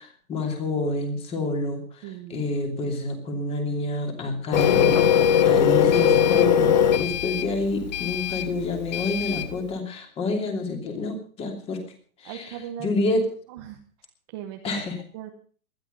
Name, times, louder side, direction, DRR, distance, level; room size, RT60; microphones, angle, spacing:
voice 1, 0.0-11.8 12.2-13.3 14.6-15.0, left 2 dB, 15° left, 5 dB, 2.8 m, -28 dB
voice 2, 2.0-2.4 12.2-12.9 13.5-13.8 14.3-14.7 15.1-15.3, right 10 dB, 15° right, 3 dB, 1.0 m, -38 dB
Printer, 4.5-9.5, left 8 dB, 30° left, 0.9 m, -21 dB
20.0 x 12.5 x 5.4 m, 0.44 s
hypercardioid pair, 165°, 44 cm